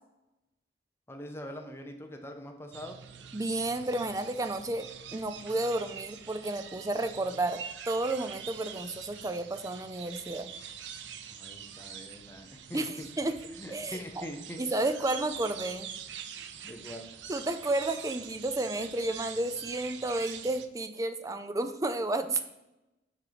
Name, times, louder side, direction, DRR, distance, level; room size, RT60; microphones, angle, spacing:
voice 1, 1.1-3.0 11.3-13.1 13.6-14.6 16.6-17.1, equal, 15° left, 4 dB, 0.7 m, -43 dB
sound 1, 2.7-20.7, right 8 dB, 85° right, 0.5 m, -45 dB
voice 2, 3.3-4.9 5.1-7.6 7.9-10.5 12.7-13.4 13.7-14.2 14.6-15.9 17.3-22.4, right 2 dB, 20° right, 9 dB, 0.4 m, -31 dB
6.0 x 4.5 x 5.0 m, 0.94 s
head